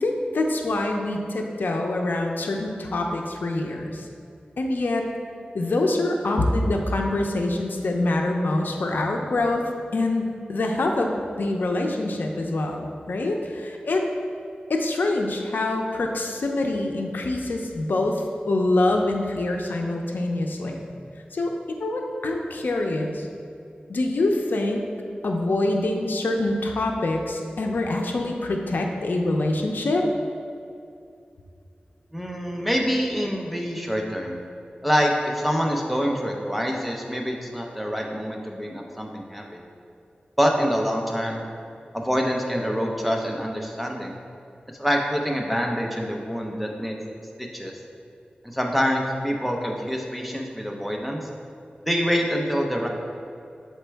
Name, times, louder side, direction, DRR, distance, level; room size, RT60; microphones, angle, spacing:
voice 1, 0.0-4.0 4.6-5.0 5.5-9.6 9.9-12.8 13.1-14.1 14.7-20.8 21.3-23.3 23.9-24.8 25.2-30.0, left 2 dB, 80° left, 2 dB, 0.6 m, -25 dB
voice 2, 32.1-34.4 34.8-39.6 40.4-41.4 41.9-44.1 44.8-47.0 47.4-47.7 48.4-51.2 51.8-52.9, equal, ahead, 0 dB, 0.8 m, -26 dB
7.2 x 4.5 x 3.4 m, 2.5 s
wide cardioid pair, 75°, 3 cm